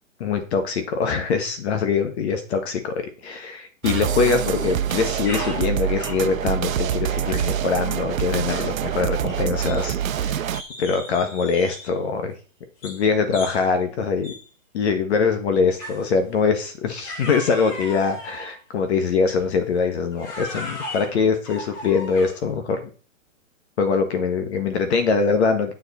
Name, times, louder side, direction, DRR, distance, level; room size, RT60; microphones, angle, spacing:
voice 1, 0.2-10.5 10.8-12.3 12.8-14.3 14.7-22.8 23.8-25.7, left 5 dB, 55° left, 7 dB, 1.7 m, -23 dB
sound 1, 3.8-10.6, right 10 dB, 85° right, 0.8 m, -25 dB
sound 2, 4.2-4.7 5.0-6.3 7.1-7.6 7.8-8.0 8.4-8.8 9.3-10.2 10.5-12.0 12.8-13.0 13.3-13.7 14.2-14.5 15.8-16.1 17.0-18.6 19.4-19.6 20.1-22.5, left 1 dB, 35° left, 3.3 m, -37 dB
9.6 x 7.2 x 4.3 m, 0.38 s
hypercardioid pair, 155°, 40 cm